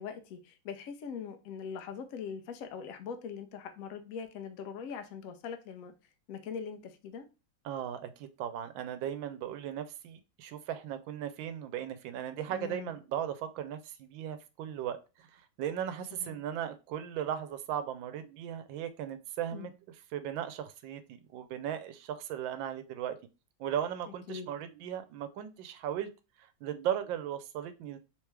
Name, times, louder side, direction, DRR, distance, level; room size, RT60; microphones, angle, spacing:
voice 1, 0.0-5.9 6.3-7.3 12.5-13.0 16.1-16.4 19.5-19.7 24.3-24.5, left 6 dB, 65° left, 7 dB, 0.8 m, -42 dB
voice 2, 7.6-19.7 20.1-23.1 23.6-26.1 26.4-28.0, right 10 dB, 85° right, 11 dB, 1.3 m, -37 dB
3.5 x 3.1 x 3.2 m, 0.29 s
omnidirectional pair, 2.1 m